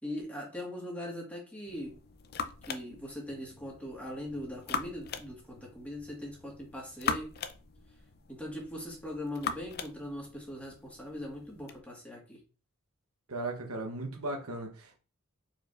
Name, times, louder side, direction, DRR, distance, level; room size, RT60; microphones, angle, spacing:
voice 1, 0.0-1.9 2.7-7.3 8.3-12.4, left 1 dB, 5° left, 1.6 m, -40 dB
sound 1, 1.7-11.8, left 6 dB, 45° left, 0.4 m, -41 dB
voice 2, 13.3-15.0, right 2 dB, 80° right, 0.9 m, -37 dB
4.7 x 4.4 x 2.5 m
head